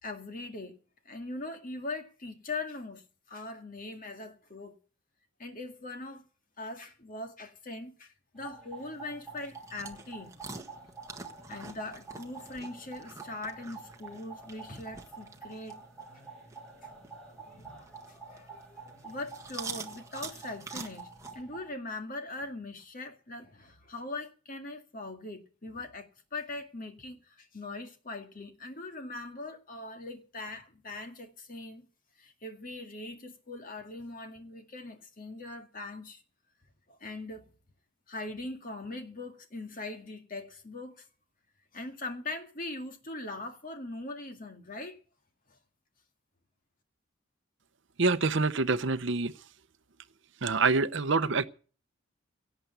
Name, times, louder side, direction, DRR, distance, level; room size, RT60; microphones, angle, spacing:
voice 1, 0.0-0.8 1.1-4.8 5.4-6.3 6.6-10.3 11.5-15.8 17.2-21.1 21.3-31.9 32.2-36.2 36.9-37.5 38.1-41.1 41.7-45.0 45.5-45.6, left 2 dB, 40° left, 2.0 m, -41 dB
sound 1, 8.4-21.7, right 4 dB, 5° left, 6.9 m, -48 dB
sound 2, 8.8-21.4, right 4 dB, 15° right, 1.5 m, -47 dB
voice 2, 48.0-49.3 50.4-51.5, right 3 dB, 55° right, 0.7 m, -26 dB
17.5 x 8.0 x 8.3 m
head